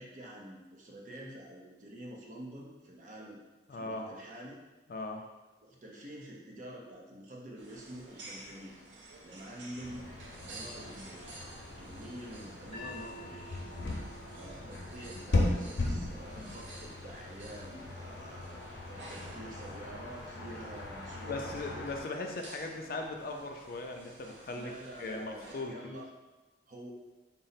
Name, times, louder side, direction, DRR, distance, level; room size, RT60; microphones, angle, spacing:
voice 1, 0.0-3.4 3.7-4.6 5.6-8.8 9.2-10.1 10.4-11.2 11.7-13.6 13.9-18.6 18.9-21.5 24.5-26.1 26.7-26.9, right 1 dB, 45° right, -2 dB, 0.6 m, -47 dB
voice 2, 3.7-4.1 4.9-5.2 21.2-24.7 25.0-26.0, left 2 dB, 50° left, 3 dB, 0.4 m, -39 dB
sound 1, 7.6-25.6, right 2 dB, 85° right, 0.7 m, -52 dB
sound 2, 9.8-22.0, left 2 dB, 75° left, 0.7 m, -38 dB
sound 3, 12.7-18.9, left 1 dB, 30° left, 0.8 m, -52 dB
4.0 x 2.0 x 4.0 m, 1.2 s
head